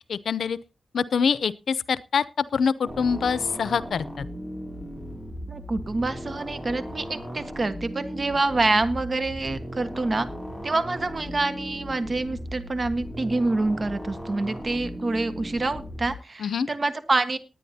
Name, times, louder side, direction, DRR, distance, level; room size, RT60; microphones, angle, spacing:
voice 1, 0.1-0.6 0.9-4.3 16.4-16.7, left 6 dB, 85° left, 0.6 m, -25 dB
sound 1, 2.9-16.1, equal, 5° right, 3.5 m, -37 dB
voice 2, 5.5-10.3 10.6-17.4, right 2 dB, 40° right, 1.4 m, -26 dB
19.5 x 10.0 x 2.8 m
wide cardioid pair, 105°, 0 cm